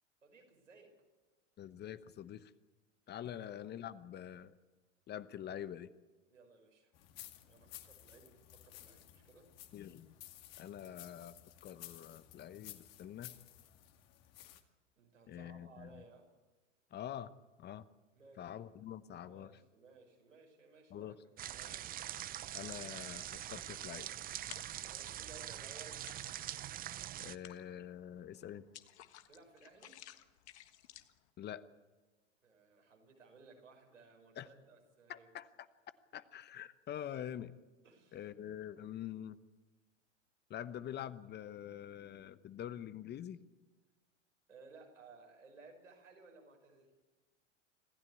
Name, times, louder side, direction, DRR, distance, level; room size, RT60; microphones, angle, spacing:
voice 1, 0.2-1.0 3.3-3.5 6.3-6.9 7.5-9.5 15.0-16.3 18.1-18.6 19.1-22.0 24.9-26.0 29.3-30.0 32.4-35.3 37.8-38.2 44.5-46.9, right 4 dB, 85° right, 2 dB, 5.8 m, -59 dB
voice 2, 1.6-2.5 3.1-4.5 5.1-5.9 9.7-10.1 10.6-11.3 11.6-13.3 15.3-16.0 16.9-17.3 17.6-17.9 18.4-19.5 20.9-21.1 22.5-24.1 27.2-28.7 31.4-31.6 34.4-34.5 35.1-35.5 36.1-37.5 38.1-39.4 40.5-43.4, left 10 dB, 25° left, 14 dB, 0.9 m, -45 dB
sound 1, 6.9-14.6, left 13 dB, 45° left, 2.3 m, -55 dB
sound 2, 21.4-27.4, right 12 dB, 25° right, 0.6 m, -44 dB
sound 3, 24.3-25.0 25.4-26.7 27.0-31.3, left 13 dB, 60° left, 1.6 m, -55 dB
26.5 x 15.0 x 8.3 m, 1.2 s
figure-of-eight pair, 90°, 37 cm